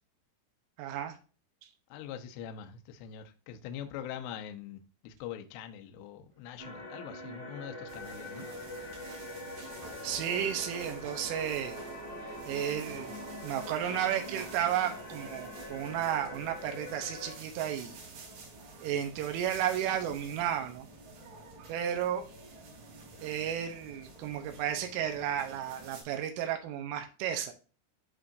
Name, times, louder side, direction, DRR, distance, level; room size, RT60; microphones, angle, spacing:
voice 1, 0.8-1.2 10.0-11.8 12.5-18.0 18.8-20.9 21.7-22.3 23.2-27.5, right 10 dB, 80° right, 3.3 m, -33 dB
voice 2, 1.9-8.4, left 9 dB, 85° left, 2.4 m, -43 dB
sound 1, 6.3-7.2 9.4-20.8, right 2 dB, 40° right, 1.0 m, -53 dB
sound 2, 6.6-17.3, left 1 dB, 25° left, 1.4 m, -44 dB
sound 3, 7.9-26.0, right 3 dB, 60° right, 3.7 m, -50 dB
11.0 x 3.8 x 2.6 m
omnidirectional pair, 5.8 m